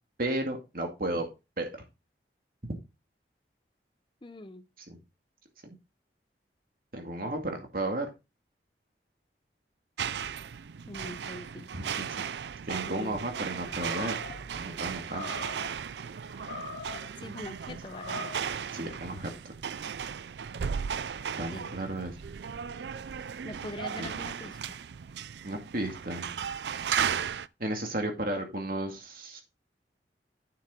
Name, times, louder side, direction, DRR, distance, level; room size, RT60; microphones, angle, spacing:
voice 1, 0.2-1.3 1.6-1.8 2.7-2.8 4.8-5.0 5.6-5.8 6.9-8.1 11.7-12.3 12.7-14.2 14.5-15.3 17.7-17.8 18.7-19.3 21.4-22.1 24.0-24.1 25.4-26.3 27.6-29.4, right 1 dB, 55° right, 2.2 m, -34 dB
voice 2, 4.2-4.7 10.9-11.9 12.9-13.2 17.2-18.3 21.5-21.8 23.4-24.8, left 2 dB, 25° left, 0.7 m, -43 dB
sound 1, 10.0-27.5, right 7 dB, 75° right, 0.4 m, -36 dB
Animal, 13.7-14.4 15.1-15.7 16.3-17.1 17.8-18.5, left 3 dB, 90° left, 2.2 m, -41 dB
9.1 x 6.7 x 3.7 m
head